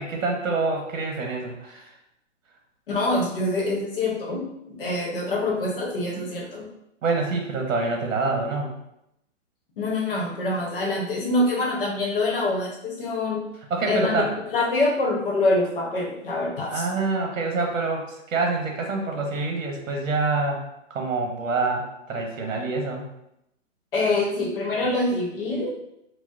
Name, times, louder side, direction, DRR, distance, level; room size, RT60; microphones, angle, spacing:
voice 1, 0.0-1.9 7.0-8.7 13.7-14.3 16.7-20.6 20.9-23.1, right 3 dB, 80° right, 1 dB, 0.9 m, -26 dB
voice 2, 2.9-6.7 9.8-13.4 13.9-14.2 14.5-16.8 23.9-25.7, left 2 dB, 45° left, -1 dB, 0.8 m, -25 dB
4.2 x 2.0 x 2.4 m, 0.82 s
hypercardioid pair, 170°, 38 cm